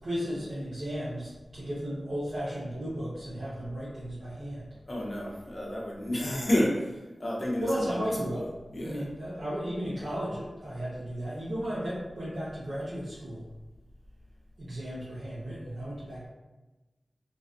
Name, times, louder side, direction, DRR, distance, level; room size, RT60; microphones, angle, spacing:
voice 1, 0.0-4.7 7.6-8.5 8.8-13.4 14.6-16.3, equal, 70° right, -11 dB, 0.8 m, -34 dB
voice 2, 4.9-6.9 7.2-8.4 8.7-9.0, left 1 dB, 40° left, -4 dB, 0.6 m, -30 dB
2.5 x 2.4 x 2.4 m, 1.1 s
wide cardioid pair, 85°, 0 cm